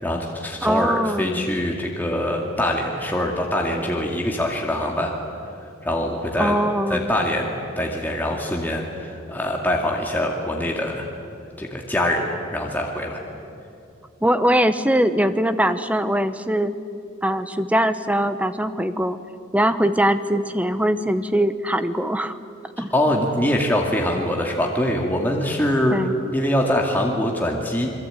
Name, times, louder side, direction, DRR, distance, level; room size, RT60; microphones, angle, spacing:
voice 1, 0.0-5.1 5.8-6.5 6.9-11.1 11.6-13.2 22.9-26.0 26.3-27.9, left 1 dB, 10° left, -1 dB, 2.2 m, -23 dB
voice 2, 0.6-1.5 6.4-7.1 14.2-16.7 17.2-19.2 19.5-22.4 22.8-22.9 25.9-26.1, equal, 5° right, 11 dB, 0.9 m, -21 dB
27.5 x 22.0 x 9.1 m, 2.5 s
head